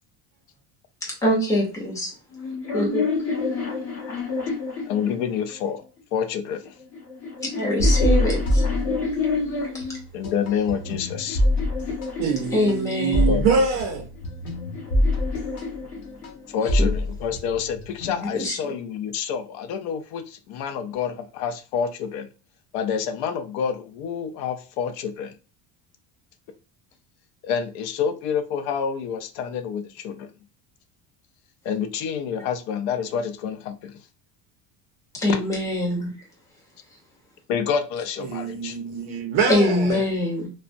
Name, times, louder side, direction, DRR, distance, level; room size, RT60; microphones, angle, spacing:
voice 1, 1.0-2.1 2.7-3.1 7.5-8.6 9.7-9.8 12.5-13.3 16.8-17.0 18.3-18.5 35.2-36.1 39.5-40.5, left 1 dB, 10° left, 0.6 m, -23 dB
sound 1, 2.3-5.7 6.6-10.0 10.7-13.1 14.1-16.6, left 4 dB, 40° left, 1.3 m, -30 dB
voice 2, 4.9-5.8 6.1-6.7 10.1-11.4 13.3-13.4 16.5-22.3 22.7-25.3 27.4-30.3 31.6-34.0 35.2-35.4 37.5-38.8, left 7 dB, 90° left, 0.5 m, -28 dB
sound 2, 7.8-9.5 9.8-18.5, left 1 dB, 60° left, 1.0 m, -25 dB
voice 3, 12.2-14.1 38.2-40.1, right 5 dB, 45° right, 0.4 m, -24 dB
3.2 x 2.0 x 2.5 m
cardioid pair, 170°, 41 cm